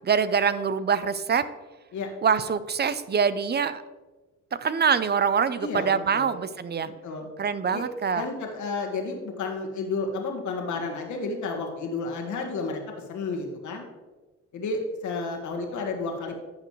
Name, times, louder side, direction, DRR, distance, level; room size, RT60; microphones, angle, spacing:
voice 1, 0.0-1.5 2.2-3.8 4.6-6.9 7.4-8.3, right 6 dB, 35° right, 14 dB, 0.5 m, -24 dB
voice 2, 5.6-6.4 6.8-7.3 7.7-7.8 8.1-12.8 13.1-13.8 14.5-16.5, left 3 dB, 75° left, 2 dB, 1.7 m, -31 dB
11.0 x 6.9 x 3.1 m, 1.2 s
cardioid pair, 90°, 30 cm